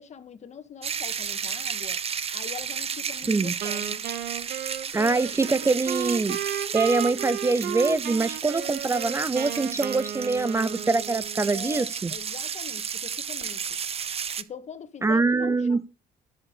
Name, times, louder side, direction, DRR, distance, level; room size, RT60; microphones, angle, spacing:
voice 1, 0.0-2.0 2.3-4.0 11.5-13.6 14.4-15.9, left 7 dB, 45° left, 1.7 m, -42 dB
sound 1, 0.8-14.4, right 7 dB, 35° right, 0.9 m, -33 dB
Wind instrument woodwind instrument, 3.6-11.5, right 9 dB, 65° right, 1.7 m, -34 dB
voice 2, 4.9-6.4 6.7-12.1 15.0-15.9, right 3 dB, 15° right, 0.5 m, -24 dB
16.0 x 7.4 x 6.5 m
cardioid pair, 110°, 17 cm